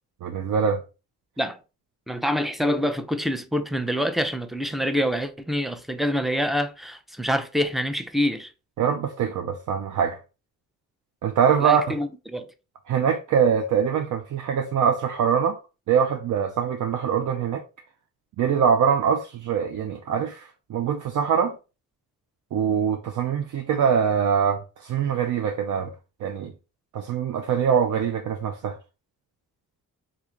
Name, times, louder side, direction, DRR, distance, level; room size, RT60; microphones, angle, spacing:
voice 1, 0.2-0.8 8.8-10.2 11.2-12.0 12.9-15.6 15.9-17.6 18.4-21.6 22.5-25.9 26.2-26.5 26.9-28.8, right 7 dB, 60° right, 0.5 m, -23 dB
voice 2, 2.1-8.5 11.6-12.5, equal, ahead, 0.4 m, -26 dB
3.1 x 2.5 x 3.7 m
cardioid pair, 85°, 36 cm